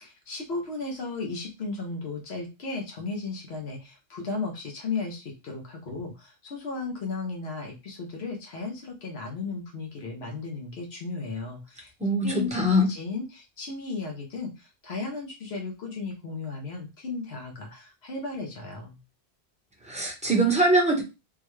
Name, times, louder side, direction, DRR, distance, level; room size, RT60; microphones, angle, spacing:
voice 1, 0.0-11.9 12.2-19.0, left 3 dB, 75° left, 1 dB, 1.0 m, -35 dB
voice 2, 12.0-12.9 19.8-21.0, right 1 dB, 5° right, -1 dB, 0.9 m, -22 dB
3.6 x 2.2 x 3.1 m, 0.26 s
omnidirectional pair, 1.1 m